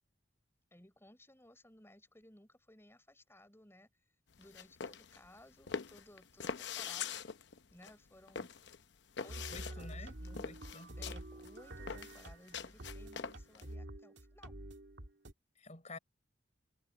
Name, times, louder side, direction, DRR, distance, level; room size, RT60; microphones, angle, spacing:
voice 1, 0.7-3.9 4.4-7.2 7.7-8.5 9.2-10.5 11.0-14.6, left 1 dB, 15° left, 6.9 m, -60 dB
sound 1, 4.3-13.7, left 6 dB, 65° left, 0.8 m, -44 dB
sound 2, 9.3-15.3, right 1 dB, 70° right, 2.5 m, -48 dB
voice 2, 9.5-11.0 15.6-16.0, left 3 dB, 40° left, 6.6 m, -50 dB
head